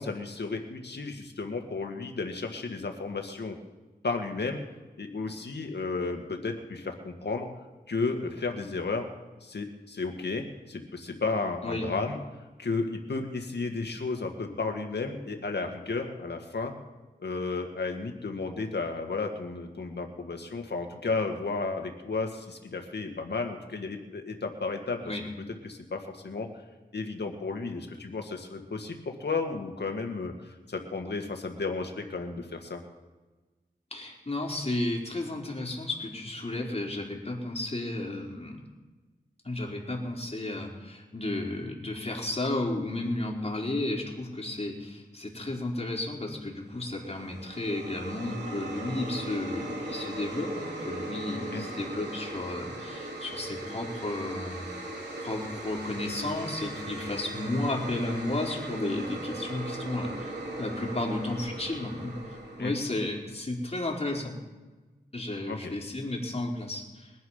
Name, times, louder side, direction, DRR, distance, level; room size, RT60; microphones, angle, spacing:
voice 1, 0.0-3.6 4.0-4.6 5.0-7.5 7.9-9.1 9.4-12.2 12.6-16.7 17.2-25.0 25.6-26.5 26.9-32.8 51.5-51.7 62.6-62.7 65.5-65.7, left 3 dB, 80° left, 4 dB, 2.1 m, -33 dB
voice 2, 33.9-38.6 39.4-54.7 55.2-62.1 62.6-64.3 65.1-67.1, left 2 dB, 35° left, -1 dB, 4.2 m, -33 dB
sound 1, 46.7-63.2, right 1 dB, 80° right, 3.3 m, -39 dB
22.0 x 10.5 x 5.7 m, 1.2 s
cardioid pair, 45°, 17 cm